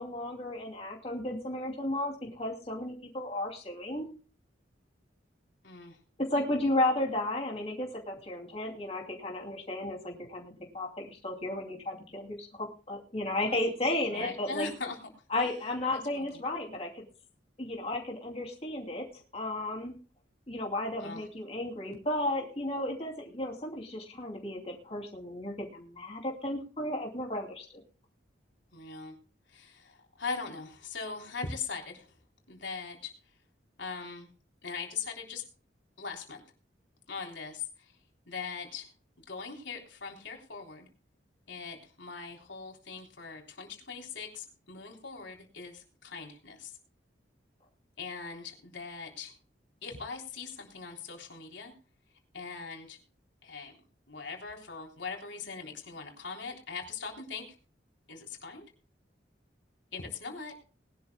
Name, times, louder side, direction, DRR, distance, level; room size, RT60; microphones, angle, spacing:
voice 1, 0.0-4.1 6.2-14.7 15.3-17.0 17.6-19.1 19.3-19.9 20.5-27.7, left 1 dB, 35° left, 0 dB, 2.7 m, -34 dB
voice 2, 5.6-6.0 13.5-13.6 14.1-15.0 15.9-16.4 21.0-21.2 28.7-29.1 29.5-32.1 32.5-33.1 33.8-34.3 34.6-35.4 36.0-36.4 37.1-37.9 38.3-38.9 39.2-40.9 41.5-46.8 48.0-49.3 49.8-51.7 52.3-53.0 53.4-53.7 54.1-57.4 58.1-58.7 59.9-60.5, left 5 dB, 90° left, 1 dB, 3.5 m, -40 dB
21.0 x 12.0 x 2.2 m, 0.38 s
head